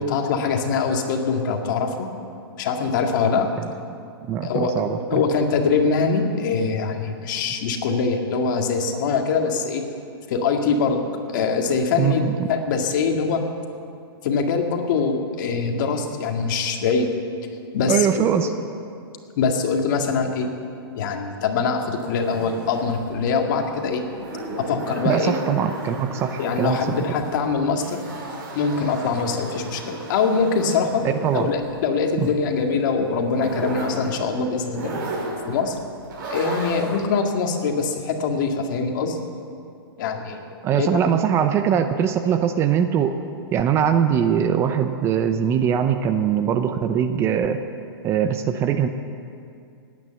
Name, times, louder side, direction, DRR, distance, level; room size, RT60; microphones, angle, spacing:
voice 1, 0.0-2.1 2.6-3.5 4.4-4.7 5.1-9.8 10.3-11.0 11.3-13.4 14.2-17.1 17.7-18.3 19.4-20.5 21.0-24.0 24.6-25.3 26.4-28.0 28.5-31.1 31.3-34.9 35.5-35.8 36.3-39.2 40.0-41.2, left 5 dB, 50° left, 3 dB, 2.0 m, -23 dB
voice 2, 4.3-5.2 12.0-12.5 17.9-18.5 25.0-27.0 31.0-31.5 32.2-32.3 40.6-43.2 43.5-47.6 48.0-48.9, right 8 dB, 20° right, 8 dB, 0.6 m, -22 dB
sound 1, 22.0-37.2, right 2 dB, 55° right, 4.8 m, -35 dB
19.0 x 9.4 x 7.7 m, 2.5 s
hypercardioid pair, 150°, 13 cm